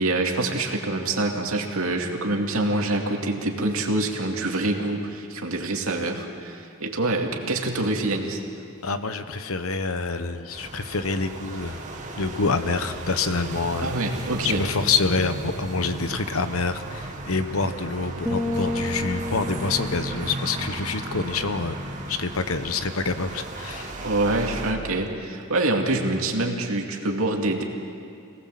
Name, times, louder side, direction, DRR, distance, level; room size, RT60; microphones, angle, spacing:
voice 1, 0.0-8.4 13.8-14.6 24.0-27.6, right 2 dB, 80° right, 2 dB, 2.5 m, -25 dB
voice 2, 8.8-11.8 12.2-13.9 14.4-21.8 22.1-23.9, left 4 dB, 85° left, 10 dB, 1.1 m, -27 dB
sound 1, 10.5-24.7, right 2 dB, 35° right, 2.1 m, -35 dB
sound 2, 18.3-22.0, left 1 dB, 5° right, 1.3 m, -32 dB
26.0 x 18.5 x 7.7 m, 2.5 s
head